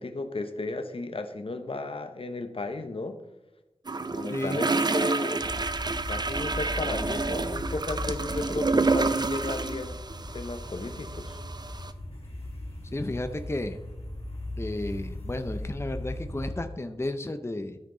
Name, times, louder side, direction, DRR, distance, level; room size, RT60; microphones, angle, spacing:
voice 1, 0.0-3.2 4.0-5.5 6.1-10.0 10.3-11.4, left 2 dB, 65° left, 8 dB, 0.8 m, -34 dB
sound 1, 3.9-11.9, right 3 dB, 45° right, 0.5 m, -29 dB
sound 2, 5.4-16.6, left 1 dB, 85° left, 2.0 m, -38 dB
voice 2, 12.9-13.8 14.6-17.8, left 1 dB, 25° left, 8 dB, 0.6 m, -33 dB
13.0 x 5.8 x 3.8 m, 0.98 s
wide cardioid pair, 70°, 10 cm